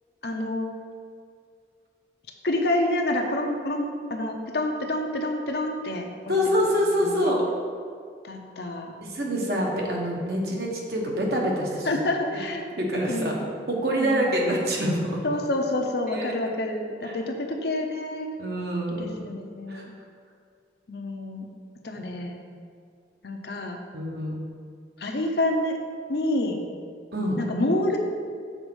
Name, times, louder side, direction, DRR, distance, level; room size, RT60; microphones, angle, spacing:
voice 1, 0.2-0.7 2.4-7.3 8.2-8.9 11.8-12.6 13.1-13.5 14.0-14.3 15.2-18.4 18.9-19.9 20.9-21.5 21.8-22.4 23.2-23.8 25.0-25.8 26.1-26.6 27.4-28.0, left 1 dB, 60° left, 2 dB, 0.8 m, -28 dB
voice 2, 6.3-7.4 9.1-12.0 12.3-12.4 12.8-13.3 13.7-15.2 16.1-16.3 17.0-17.1 18.4-19.1 19.7-19.8 23.9-24.4 27.1-27.4, equal, 60° right, -2 dB, 1.3 m, -26 dB
6.6 x 4.4 x 6.3 m, 2.2 s
head